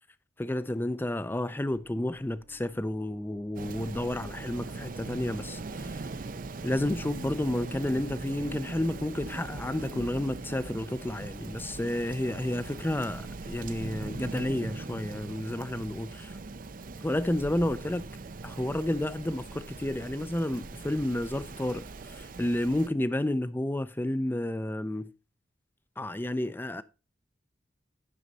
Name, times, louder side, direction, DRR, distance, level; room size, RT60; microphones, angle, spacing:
voice 1, 0.4-5.9 6.6-16.4 17.0-18.1 18.4-21.8 22.1-25.1 26.0-26.8, left 1 dB, 10° left, 0.4 m, -31 dB
sound 1, 1.7-7.0, left 1 dB, 85° left, 5.3 m, -58 dB
Rain, 3.5-22.9, right 3 dB, 50° right, 0.6 m, -41 dB
11.0 x 6.3 x 4.1 m
head